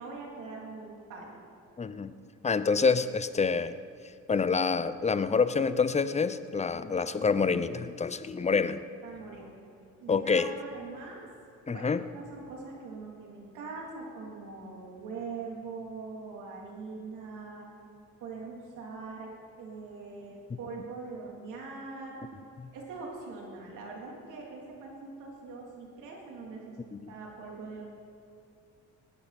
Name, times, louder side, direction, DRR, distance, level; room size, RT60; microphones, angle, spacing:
voice 1, 0.0-1.5 8.4-8.5 9.0-9.6 10.0-11.2 11.7-17.7 18.2-22.2 22.7-27.8, right 4 dB, 90° right, -2 dB, 3.4 m, -42 dB
voice 2, 1.8-2.1 2.4-3.7 4.3-8.8 10.1-10.5 11.7-12.0 22.6-22.7 26.9-27.1, left 5 dB, 20° left, 13 dB, 0.7 m, -27 dB
19.0 x 14.0 x 4.3 m, 2.5 s
cardioid pair, 90°, 30 cm